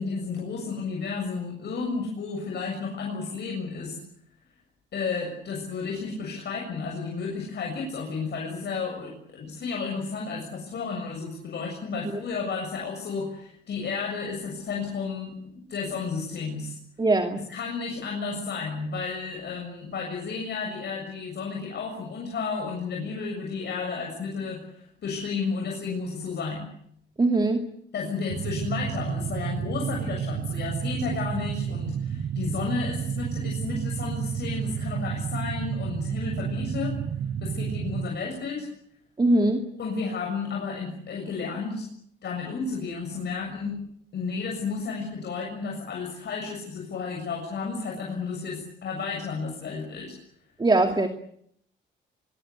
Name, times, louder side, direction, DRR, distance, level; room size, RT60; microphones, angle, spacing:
voice 1, 0.0-4.0 4.9-16.8 17.5-26.7 27.9-37.0 37.4-38.7 39.8-41.9 42.2-43.8 44.1-50.1, left 4 dB, 60° left, 0 dB, 7.1 m, -32 dB
voice 2, 17.0-17.4 27.2-27.7 39.2-39.6 50.6-51.1, right 2 dB, 20° right, 6 dB, 2.6 m, -21 dB
sound 1, 28.3-38.1, right 8 dB, 55° right, 1.7 m, -31 dB
25.5 x 23.5 x 8.4 m, 0.71 s
cardioid pair, 90°, 20 cm